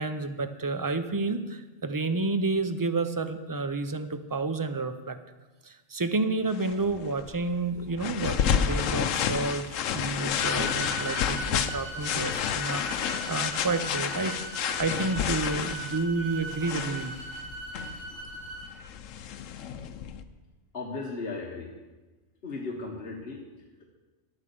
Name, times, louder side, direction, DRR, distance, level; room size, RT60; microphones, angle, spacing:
voice 1, 0.0-5.2 5.6-9.7 9.9-17.1, right 3 dB, 35° right, 9 dB, 0.3 m, -30 dB
sound 1, 6.5-20.2, left 8 dB, 80° left, 1.0 m, -31 dB
sound 2, 10.4-18.7, right 2 dB, 85° right, 5.1 m, -39 dB
voice 2, 20.7-21.7 22.4-23.4, left 3 dB, 50° left, -1 dB, 1.5 m, -36 dB
11.0 x 8.6 x 6.9 m, 1.2 s
omnidirectional pair, 1.3 m